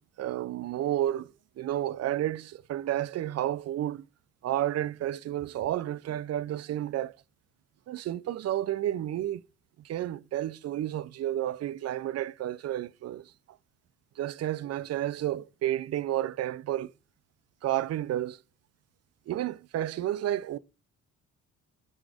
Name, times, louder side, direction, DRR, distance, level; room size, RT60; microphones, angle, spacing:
voice 1, 0.0-1.3 1.6-4.0 4.4-7.2 7.9-9.4 9.8-13.2 14.2-16.9 17.6-18.4 19.3-20.6, right 12 dB, 55° right, 0.5 m, -31 dB
6.1 x 4.7 x 4.9 m
cardioid pair, 90°, 30 cm